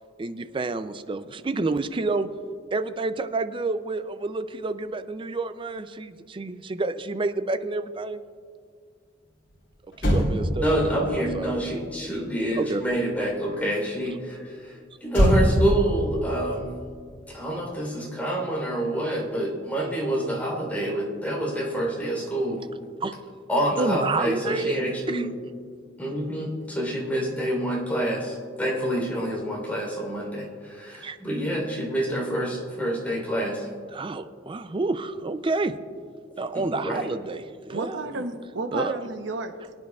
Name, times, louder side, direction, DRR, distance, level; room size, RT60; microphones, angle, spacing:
voice 1, 0.2-2.3 2.7-8.2 10.0-11.5 12.5-12.8 23.0-23.1 23.8-24.8 25.1-25.3 31.0-31.2 33.9-35.8 36.4-38.0 38.7-39.0, right 3 dB, 25° right, 11 dB, 0.4 m, -29 dB
Motor vehicle (road), 9.5-9.6 9.9-13.5 15.1-17.7 18.0-18.2, equal, 70° left, 3.0 m, -26 dB
voice 2, 10.6-14.8 15.0-16.7 17.3-22.6 23.5-25.3 26.0-33.7 36.5-37.1, right 1 dB, 10° left, -2 dB, 3.5 m, -27 dB
voice 3, 37.7-39.7, right 2 dB, 70° right, 7 dB, 0.8 m, -32 dB
23.5 x 9.8 x 2.4 m, 2.1 s
head